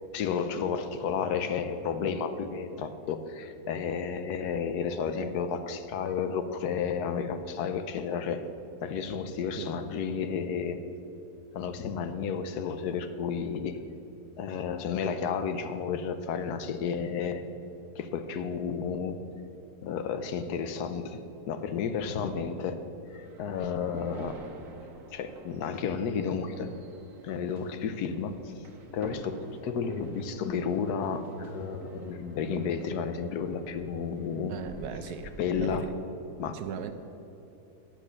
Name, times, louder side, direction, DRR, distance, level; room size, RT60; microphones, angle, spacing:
voice 1, 0.1-8.5 8.8-10.8 11.5-13.8 14.4-17.4 18.0-19.2 19.8-21.2 21.5-22.8 23.1-24.4 25.1-26.7 27.2-28.3 28.9-34.5 35.4-35.8 36.4-36.6, left 6 dB, 80° left, 10 dB, 1.2 m, -32 dB
sound 1, 23.1-35.8, right 3 dB, 60° right, 1.3 m, -49 dB
voice 2, 34.5-35.9 36.5-36.9, right 8 dB, 75° right, 8 dB, 1.2 m, -38 dB
9.1 x 7.9 x 6.4 m, 2.9 s
omnidirectional pair, 1.7 m